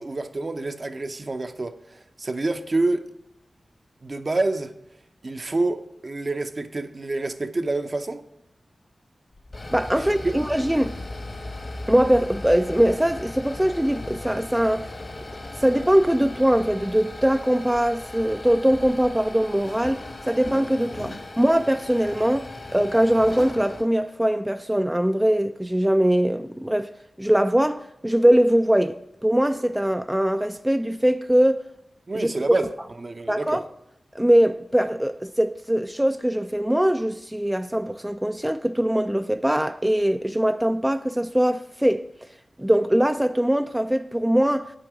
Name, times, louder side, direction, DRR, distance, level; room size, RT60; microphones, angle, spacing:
voice 1, 0.0-3.0 4.0-4.7 5.2-8.2 10.0-10.4 32.1-32.7 33.0-33.6, right 2 dB, 50° right, 0.7 m, -27 dB
sound 1, 9.3-23.9, left 2 dB, 50° left, 1.3 m, -37 dB
voice 2, 9.7-10.9 11.9-14.9 15.6-22.5 22.7-26.9 27.2-31.6 32.1-32.3 33.3-33.6 34.1-42.1 42.6-44.7, equal, 10° right, 0.4 m, -21 dB
8.4 x 7.6 x 5.0 m
cardioid pair, 45°, 0 cm